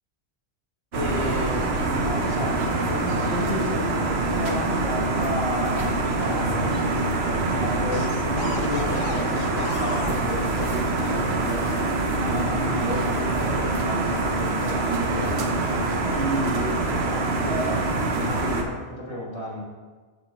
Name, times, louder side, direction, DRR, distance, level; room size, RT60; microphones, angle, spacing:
voice 1, 0.9-2.5 2.9-6.9 7.4-11.7 12.2-15.5 16.1-17.8 18.1-19.6, equal, 70° left, -6 dB, 2.9 m, -32 dB
sound 1, 0.9-18.6, right 2 dB, 60° right, 1.0 m, -25 dB
sound 2, 7.9-11.2 12.3-13.9 14.6-14.9, left 4 dB, 55° left, 0.6 m, -35 dB
11.0 x 4.7 x 2.9 m, 1.4 s
omnidirectional pair, 1.3 m